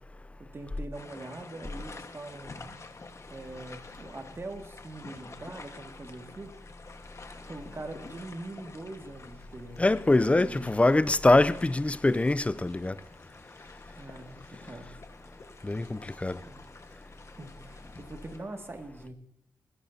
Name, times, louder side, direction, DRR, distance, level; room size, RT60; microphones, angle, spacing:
voice 1, 0.4-2.8 3.3-6.5 7.3-9.8 10.2-10.7 13.9-14.9 16.2-16.6 17.4-19.1, right 2 dB, 35° right, 2.0 m, -43 dB
sound 1, 0.9-18.4, left 3 dB, 40° left, 1.4 m, -49 dB
voice 2, 9.8-12.9 15.6-16.4, left 2 dB, 15° left, 0.5 m, -23 dB
20.0 x 16.0 x 2.8 m
wide cardioid pair, 100°, 8 cm